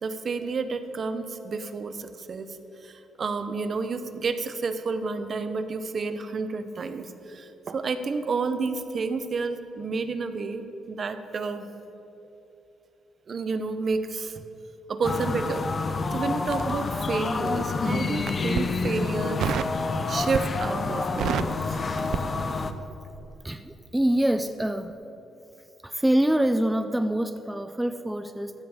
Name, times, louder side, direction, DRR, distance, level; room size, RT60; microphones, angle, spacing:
voice 1, 0.0-2.6 2.8-11.7 13.3-14.4 14.9-15.6 16.1-19.4 20.1-21.8, right 4 dB, 45° right, 10 dB, 0.8 m, -30 dB
sound 1, 15.0-22.7, left 4 dB, 35° left, 0.7 m, -28 dB
Crackle, 16.5-17.6 18.1-18.7 19.4-19.8 20.2-20.7 20.9-22.9 23.1-23.4, right 9 dB, 70° right, 0.4 m, -30 dB
voice 2, 23.4-24.9 25.8-28.5, right 1 dB, 5° right, 9 dB, 0.4 m, -25 dB
14.5 x 5.3 x 7.1 m, 2.9 s
cardioid pair, 90°, 0 cm